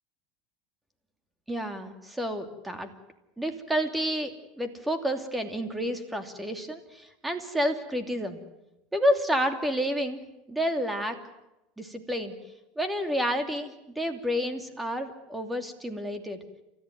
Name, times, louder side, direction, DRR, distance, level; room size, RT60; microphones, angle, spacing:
voice 1, 1.5-2.9 3.4-8.4 8.9-10.2 10.5-11.2 11.8-12.3 12.8-16.4, equal, 5° right, 7 dB, 2.8 m, -30 dB
30.0 x 14.5 x 9.4 m, 0.94 s
supercardioid pair, 120°, 0 cm